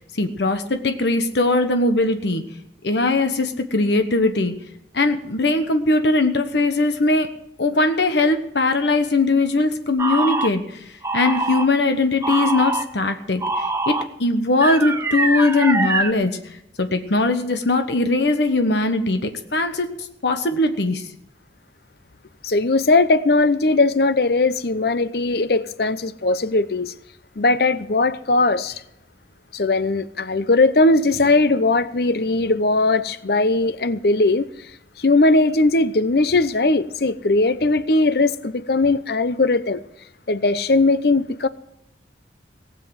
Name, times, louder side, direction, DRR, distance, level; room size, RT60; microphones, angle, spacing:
voice 1, 0.0-2.4 2.8-4.5 4.9-7.3 7.6-13.9 14.2-16.4 16.8-19.9 20.2-21.0, left 2 dB, 75° left, 1.2 m, -20 dB
sound 1, 10.0-10.5 11.0-11.7 12.2-12.8 13.4-14.0 14.6-16.1, right 3 dB, 15° right, 0.8 m, -23 dB
voice 2, 22.4-26.9 27.4-28.8 29.5-34.5 35.0-39.8 40.3-41.5, left 2 dB, 60° left, 0.7 m, -19 dB
18.5 x 7.6 x 7.6 m
head